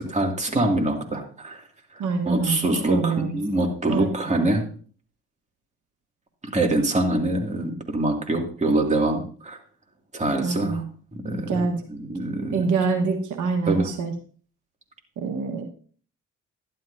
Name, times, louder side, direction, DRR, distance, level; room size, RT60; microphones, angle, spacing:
voice 1, 0.0-1.6 1.9-4.6 6.5-9.6 10.1-10.8 11.1-12.7 13.7-13.9, right 2 dB, 25° right, 2 dB, 2.4 m, -25 dB
voice 2, 2.0-3.4 3.9-4.1 10.4-10.9 11.5-11.8 12.5-14.1 15.2-15.6, right 4 dB, 75° right, 4 dB, 1.4 m, -25 dB
12.0 x 11.0 x 2.7 m, 0.43 s
cardioid pair, 90°, 30 cm